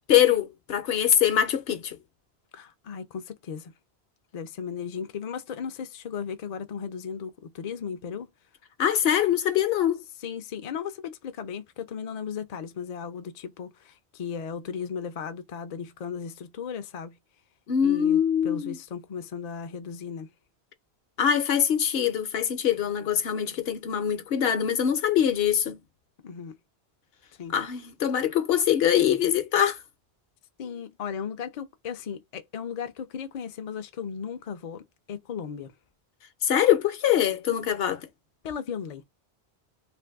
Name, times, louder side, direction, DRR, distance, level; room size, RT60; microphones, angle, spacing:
voice 1, 0.1-2.0 8.8-10.0 17.7-18.8 21.2-25.8 27.5-29.8 36.4-38.0, left 9 dB, 70° left, 0.9 m, -23 dB
voice 2, 2.5-3.7 4.3-8.3 10.2-17.2 17.8-20.3 26.2-26.6 27.4-27.5 30.6-35.7 38.4-39.0, left 7 dB, 50° left, 0.5 m, -36 dB
2.6 x 2.5 x 3.4 m
omnidirectional pair, 1.1 m